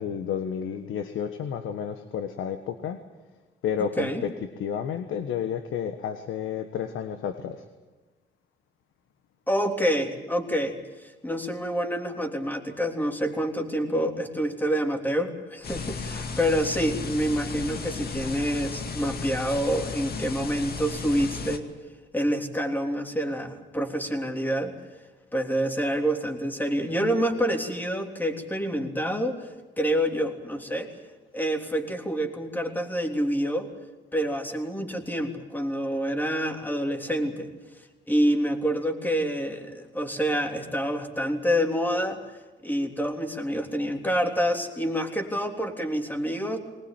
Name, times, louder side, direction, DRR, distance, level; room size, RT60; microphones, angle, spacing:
voice 1, 0.0-3.0 3.6-7.6, left 8 dB, 80° left, 9 dB, 1.4 m, -31 dB
voice 2, 9.5-21.7 22.1-24.7 25.3-30.9 31.3-33.7 34.1-37.5 38.1-42.2 42.6-46.6, equal, 10° left, 4 dB, 3.3 m, -27 dB
sound 1, 15.6-21.6, left 5 dB, 50° left, 2.2 m, -34 dB
21.5 x 19.5 x 9.0 m, 1.2 s
cardioid pair, 90°, 20 cm